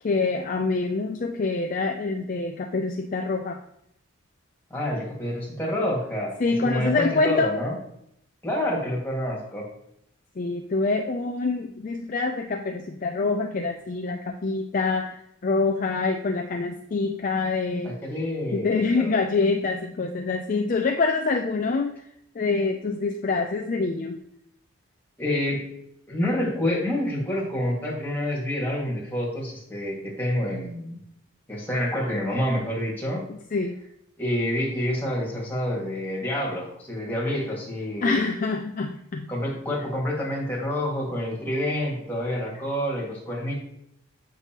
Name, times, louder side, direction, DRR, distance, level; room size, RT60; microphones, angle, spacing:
voice 1, 0.0-3.6 6.4-7.6 10.4-15.2 15.4-18.0 18.5-22.0 22.4-24.2 33.3-33.7 38.0-39.3, left 3 dB, 35° left, 4 dB, 0.4 m, -25 dB
voice 2, 4.7-6.3 6.6-7.8 8.4-9.7 17.8-19.2 25.2-25.6 26.1-31.0 31.5-33.3 34.2-38.3 39.3-43.5, left 1 dB, 10° left, -4 dB, 1.9 m, -28 dB
8.1 x 6.0 x 3.0 m, 0.74 s
head